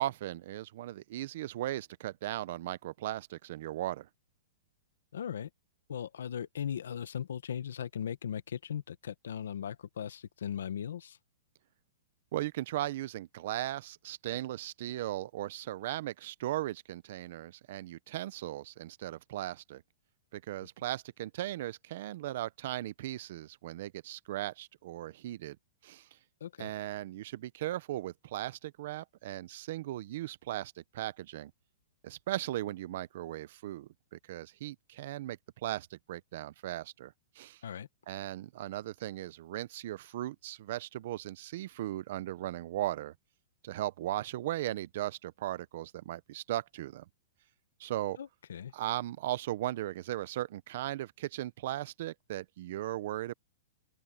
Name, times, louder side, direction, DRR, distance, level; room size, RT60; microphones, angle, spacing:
voice 1, 0.0-4.1 12.3-19.8 20.3-25.6 25.8-26.1 26.6-31.5 32.0-37.6 38.1-43.1 43.6-47.0 47.8-48.2 48.7-53.3, right 14 dB, 50° right, 0.7 m, -37 dB
voice 2, 5.1-5.5 5.9-11.2 26.4-26.7 37.6-37.9 48.2-48.7, left 8 dB, 85° left, 1.5 m, -38 dB
open air
hypercardioid pair, 165°, 0 cm